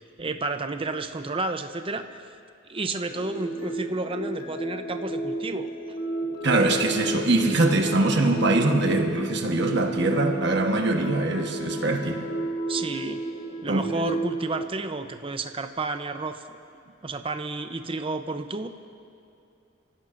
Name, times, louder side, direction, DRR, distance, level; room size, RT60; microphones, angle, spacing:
voice 1, 0.2-2.3 2.7-5.7 12.7-13.2 13.6-16.4 17.0-18.7, right 3 dB, 30° right, 8 dB, 0.7 m, -31 dB
sound 1, 3.1-14.7, right 1 dB, 50° left, 1.1 m, -32 dB
voice 2, 6.4-12.2 13.7-14.1, right 2 dB, 60° right, 3 dB, 1.3 m, -23 dB
27.5 x 15.5 x 2.6 m, 2.6 s
head